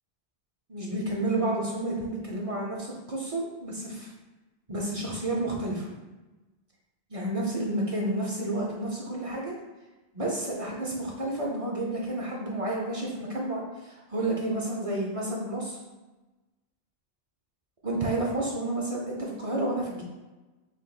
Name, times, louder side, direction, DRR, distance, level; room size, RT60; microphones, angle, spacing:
voice 1, 0.7-4.1 4.7-5.9 7.1-9.5 10.1-15.8 17.8-20.0, right 1 dB, 40° right, -2 dB, 0.6 m, -30 dB
5.7 x 3.0 x 2.3 m, 1.1 s
omnidirectional pair, 1.1 m